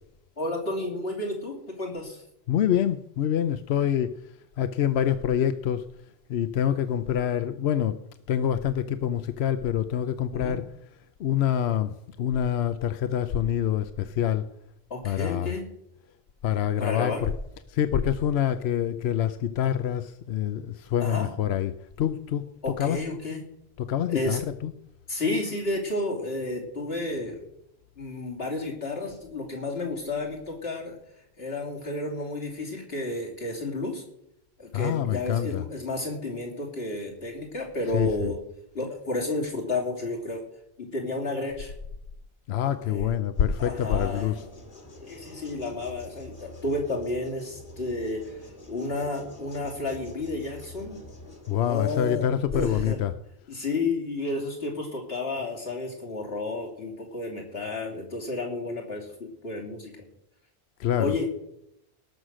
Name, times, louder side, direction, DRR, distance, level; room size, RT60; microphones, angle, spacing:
voice 1, 0.4-2.2 10.3-10.6 14.9-15.7 16.8-17.2 21.0-21.3 22.6-23.4 24.1-24.4 25.1-27.5 28.0-31.0 31.4-34.0 34.6-38.4 38.7-40.4 40.8-41.7 42.8-43.1 43.6-44.5 45.1-51.0 51.6-52.3 52.5-53.0 53.5-59.9 61.0-61.4, left 2 dB, 70° left, -1 dB, 3.3 m, -31 dB
voice 2, 2.5-4.1 4.6-5.9 6.3-8.0 8.3-10.6 11.2-14.4 15.0-15.5 16.4-17.3 17.7-22.4 22.8-23.0 23.8-24.7 34.7-35.6 37.9-38.3 42.5-44.4 51.5-53.1 60.8-61.2, left 10 dB, 90° left, 11 dB, 0.9 m, -26 dB
sound 1, 43.3-51.7, left 1 dB, 55° left, 2.1 m, -46 dB
18.5 x 6.5 x 6.2 m, 0.79 s
omnidirectional pair, 1.1 m